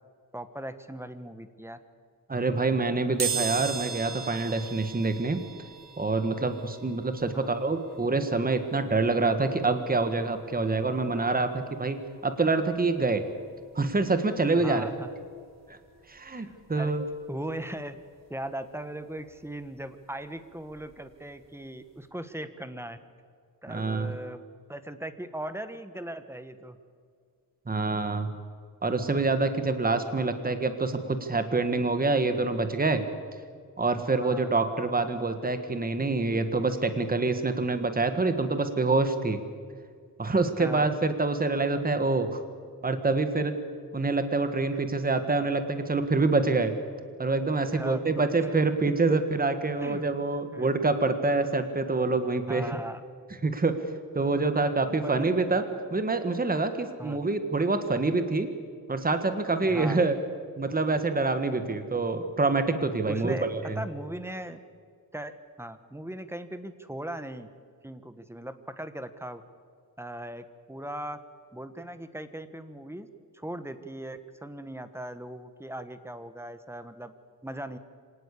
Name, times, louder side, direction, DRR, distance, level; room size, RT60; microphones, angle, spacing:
voice 1, 0.3-1.8 7.3-7.5 14.6-15.1 16.3-17.0 17.3-18.0 18.3-23.0 23.6-24.4 24.7-26.8 34.2-34.5 40.6-40.9 44.7-44.8 47.7-48.5 48.9-49.0 49.8-50.1 50.5-50.7 52.5-53.0 54.9-55.3 57.0-57.2 59.7-60.0 63.0-63.5 63.7-64.6 65.1-67.5 67.8-69.4 70.0-71.2 71.5-73.1 73.3-77.1 77.4-77.8, right 1 dB, 5° right, 10 dB, 1.3 m, -38 dB
voice 2, 2.3-5.4 6.0-13.2 13.7-14.9 15.7-15.8 16.1-17.0 23.7-24.1 27.7-28.3 28.8-33.0 33.8-39.4 40.2-42.4 42.8-43.6 43.9-46.8 47.2-52.6 53.4-53.8 54.1-55.6 55.9-58.5 58.9-60.2 60.6-63.8, right 3 dB, 25° right, 9 dB, 1.6 m, -26 dB
sound 1, 3.2-13.9 14.3-14.4 15.6-15.7 16.0-18.1 18.4-21.0 21.4-21.6 21.9-22.0, right 6 dB, 45° right, 5.0 m, -40 dB
25.5 x 18.5 x 8.4 m, 2.1 s
wide cardioid pair, 135°, 36 cm